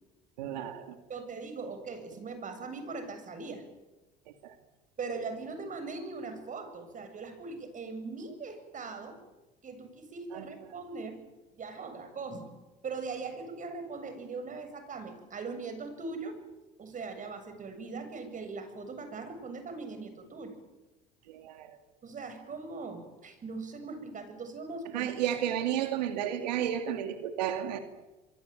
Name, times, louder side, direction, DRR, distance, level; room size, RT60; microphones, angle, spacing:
voice 1, 0.4-1.0 4.4-4.5 10.3-10.5 21.3-21.8 24.9-27.8, right 10 dB, 90° right, 7 dB, 2.3 m, -32 dB
voice 2, 1.1-3.6 5.0-9.2 9.6-11.2 11.5-12.5 12.8-16.4 16.8-20.6 22.0-25.1, right 4 dB, 40° right, 8 dB, 7.7 m, -40 dB
26.0 x 23.5 x 9.2 m, 1.1 s
supercardioid pair, 85°, 21 cm